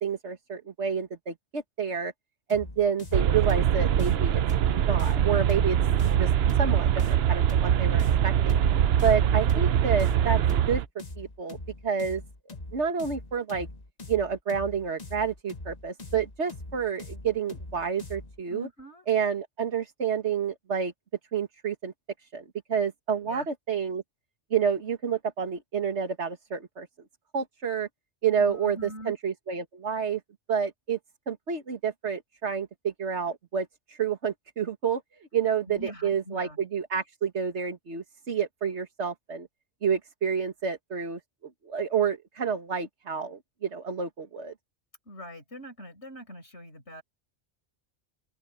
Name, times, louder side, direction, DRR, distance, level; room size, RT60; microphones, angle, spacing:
voice 1, 0.0-2.1 2.5-6.3 6.6-6.9 7.3-8.6 9.0-10.4 10.7-10.8 11.2-11.6 11.8-12.2 12.7-13.7 14.1-18.7 19.1-20.9 21.3-21.9 22.3-22.4 22.7-24.0 24.5-26.9 27.3-27.9 28.2-28.8 29.1-30.2 30.5-31.0 31.3-35.0 35.3-39.5 39.8-41.2 41.7-44.5, right 6 dB, 85° right, 2.0 m, -29 dB
sound 1, 2.5-18.4, left 2 dB, 35° left, 1.9 m, -42 dB
sound 2, 3.1-10.8, right 9 dB, 70° right, 0.9 m, -23 dB
voice 2, 9.2-9.5 18.5-19.1 23.2-23.5 28.4-29.2 35.7-36.6 45.1-47.0, equal, 80° left, 5.6 m, -43 dB
open air
omnidirectional pair, 1.1 m